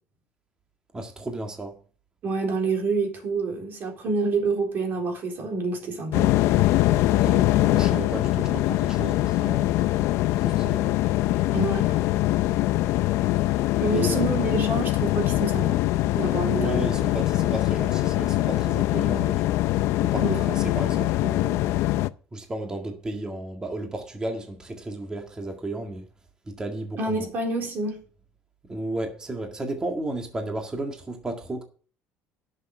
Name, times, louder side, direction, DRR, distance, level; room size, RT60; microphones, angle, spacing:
voice 1, 0.9-1.8 7.1-9.8 10.4-10.9 13.9-14.3 16.5-19.5 20.0-21.6 22.3-26.1 26.5-27.3 28.7-31.6, right 2 dB, 15° right, 1.9 m, -33 dB
voice 2, 2.2-6.4 11.5-12.0 13.8-15.8 16.2-16.8 20.2-20.5 27.0-28.0, right 3 dB, 45° right, 3.9 m, -27 dB
sound 1, 6.1-22.1, left 16 dB, 70° left, 0.5 m, -23 dB
11.0 x 6.6 x 6.7 m
cardioid pair, 155°, 5 cm